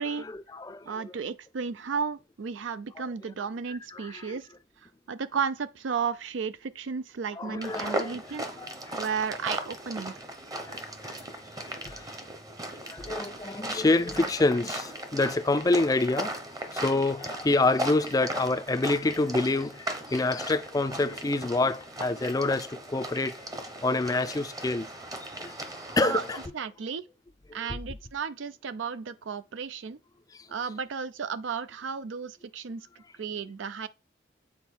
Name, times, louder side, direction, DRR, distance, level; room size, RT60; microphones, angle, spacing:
voice 1, 0.0-1.2 3.7-4.4 7.4-8.2 8.6-9.0 10.6-10.8 11.0-11.2 11.6-12.1 12.8-16.3 16.7-24.9 25.4-25.6 26.0-26.4 27.5-27.8 30.3-30.5, left 2 dB, 20° left, 0.4 m, -27 dB
voice 2, 0.8-4.5 4.8-8.5 9.0-10.1 25.9-27.0 27.5-30.0 30.5-32.9 33.2-33.9, right 6 dB, 85° right, 0.5 m, -33 dB
sound 1, 7.6-26.5, right 1 dB, 20° right, 0.8 m, -37 dB
7.4 x 4.1 x 4.5 m
head